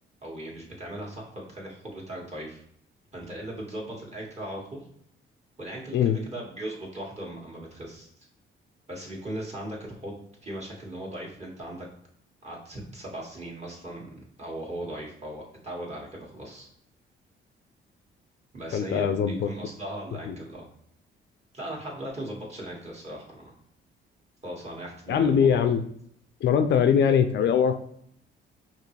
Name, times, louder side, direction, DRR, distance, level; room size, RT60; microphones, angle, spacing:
voice 1, 0.2-2.6 3.1-4.9 5.6-8.1 8.9-11.9 12.4-16.7 18.5-20.7 21.5-23.6 24.4-25.7, right 1 dB, 35° right, -3 dB, 1.8 m, -38 dB
voice 2, 18.7-19.5 20.3-20.4 25.1-25.8 26.4-27.7, left 7 dB, 60° left, 9 dB, 0.5 m, -22 dB
5.0 x 2.9 x 3.2 m, 0.67 s
cardioid pair, 90°, 20 cm